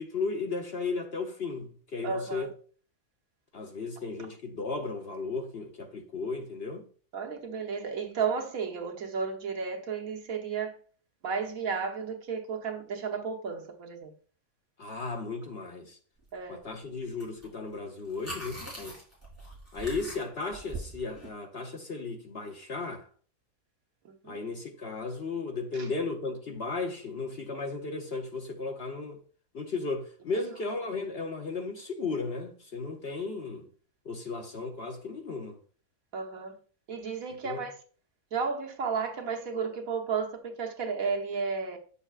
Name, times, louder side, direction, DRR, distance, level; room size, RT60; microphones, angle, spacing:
voice 1, 0.0-2.5 3.5-6.8 14.8-16.0 16.5-19.0 19.7-23.1 24.2-29.2 29.5-33.7 34.0-35.6 37.4-37.6, left 3 dB, 50° left, 0.9 m, -35 dB
voice 2, 2.0-2.5 7.1-10.7 11.2-14.1 16.3-16.6 24.2-24.4 25.7-25.9 30.3-30.4 36.1-36.5 36.9-37.8 38.3-41.8, right 5 dB, 65° right, 1.5 m, -33 dB
sound 1, 17.2-17.5 17.7-21.3, right 1 dB, 10° left, 3.6 m, -42 dB
9.0 x 6.8 x 2.4 m
omnidirectional pair, 1.6 m